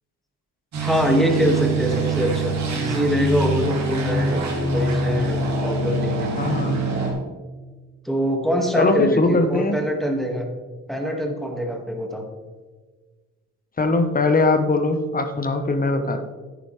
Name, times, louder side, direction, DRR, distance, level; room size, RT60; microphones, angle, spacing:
sound 1, 0.7-7.1, right 2 dB, 65° right, 2.9 m, -24 dB
voice 1, 0.8-4.4 4.7-6.3 8.0-10.5 10.9-12.2, equal, ahead, 2 dB, 2.0 m, -24 dB
voice 2, 6.4-6.8 8.7-9.8 13.8-16.2, left 2 dB, 30° left, 7 dB, 1.1 m, -20 dB
10.0 x 10.0 x 3.3 m, 1.4 s
cardioid pair, 90°, 30 cm